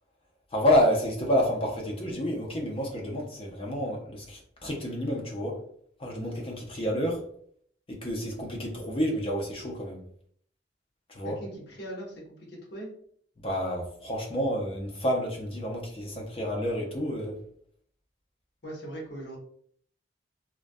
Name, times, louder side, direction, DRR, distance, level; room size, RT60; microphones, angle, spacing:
voice 1, 0.5-5.6 6.0-7.2 7.9-10.0 11.1-11.3 13.4-17.4, equal, 30° left, -1 dB, 0.5 m, -29 dB
voice 2, 11.2-12.9 18.6-19.4, right 1 dB, 65° left, -3 dB, 0.8 m, -40 dB
2.3 x 2.2 x 2.5 m, 0.62 s
head